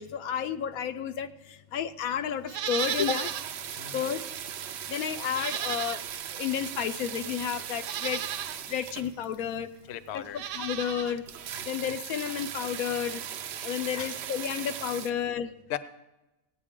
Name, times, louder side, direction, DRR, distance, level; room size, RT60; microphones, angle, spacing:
voice 1, 0.0-3.3 3.9-4.3 4.9-6.0 6.3-8.2 8.7-9.7 10.1-11.2 11.7-13.2 13.6-15.5, left 8 dB, 90° left, 9 dB, 1.1 m, -31 dB
Livestock farm animals working animals, 2.5-3.5 3.9-4.0 5.3-6.3 7.1-7.2 7.8-8.6 10.2-11.2 11.4-11.5, right 10 dB, 90° right, 1.1 m, -34 dB
sound 1, 2.8-9.6 10.1-10.2 10.5-10.6 10.8-10.9 11.1-15.1, right 9 dB, 65° right, 0.7 m, -38 dB
voice 2, 3.7-4.1 4.8-4.9 9.9-10.4 14.0-14.1 15.7-15.8, left 12 dB, 60° left, 13 dB, 0.8 m, -37 dB
17.0 x 9.0 x 3.6 m, 1.0 s
omnidirectional pair, 1.5 m